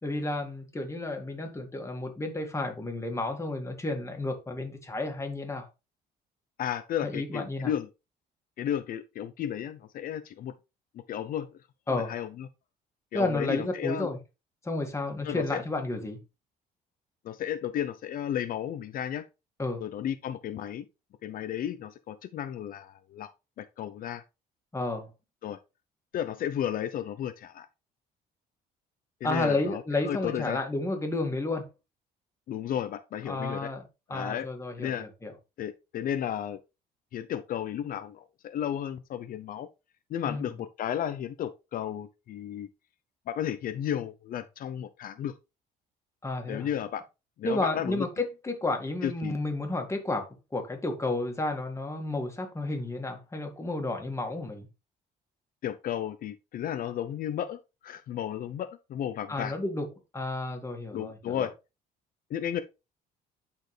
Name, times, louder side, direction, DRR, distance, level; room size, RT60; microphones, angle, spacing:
voice 1, 0.0-5.7 7.0-7.7 11.9-12.2 13.1-14.2 14.6-16.2 19.6-19.8 24.7-25.1 29.2-31.7 33.3-35.3 40.3-40.6 46.2-46.7 47.4-54.7 59.3-59.9 60.1-61.5, left 2 dB, 15° left, 2.2 m, -31 dB
voice 2, 6.6-7.9 8.6-10.5 11.1-11.5 11.9-12.5 13.1-14.1 15.2-15.6 17.2-19.2 19.8-20.8 21.2-23.3 23.6-24.2 25.4-25.6 26.1-27.7 29.2-29.8 30.1-30.6 32.5-33.7 34.1-34.5 34.8-35.0 35.6-36.6 37.1-39.7 40.1-42.7 43.3-45.3 46.5-47.0 47.4-48.0 49.0-49.4 55.6-59.5 60.9-61.5 62.3-62.6, left 10 dB, 55° left, 0.7 m, -33 dB
11.5 x 4.5 x 3.3 m
cardioid pair, 110°, 17 cm